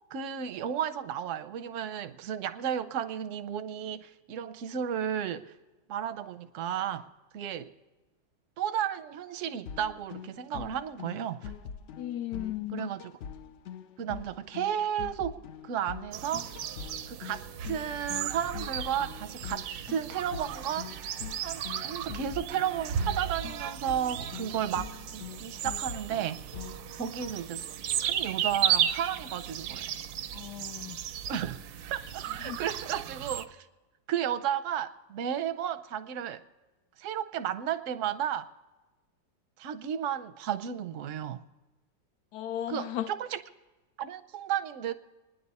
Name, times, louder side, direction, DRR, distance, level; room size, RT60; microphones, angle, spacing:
voice 1, 0.1-5.5 5.9-7.7 8.6-11.5 12.7-13.1 14.0-16.5 17.1-20.9 21.4-26.5 27.0-27.7 28.0-29.9 31.3-31.6 31.9-33.7 34.1-36.4 37.0-38.5 39.6-41.4 42.7-43.4 44.0-44.9, right 9 dB, 65° right, 0.8 m, -33 dB
sound 1, 9.7-27.3, left 7 dB, 85° left, 0.6 m, -44 dB
voice 2, 12.0-12.9 30.3-31.0 32.4-32.6 42.3-43.1, left 12 dB, 70° left, 1.1 m, -35 dB
sound 2, 16.1-33.4, right 10 dB, 90° right, 1.4 m, -35 dB
24.0 x 10.0 x 4.2 m
omnidirectional pair, 2.0 m